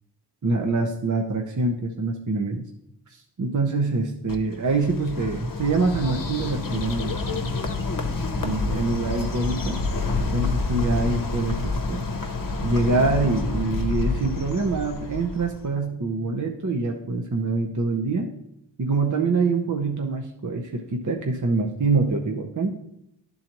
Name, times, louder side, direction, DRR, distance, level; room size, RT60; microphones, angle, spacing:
voice 1, 0.4-2.6 3.1-7.5 8.4-9.8 10.2-12.1 12.6-18.3 18.8-22.7, right 3 dB, 45° right, 2 dB, 0.7 m, -25 dB
Bird, 4.3-15.7, left 3 dB, 50° left, 0.8 m, -28 dB
11.0 x 3.9 x 2.9 m, 0.80 s
wide cardioid pair, 45°, 42 cm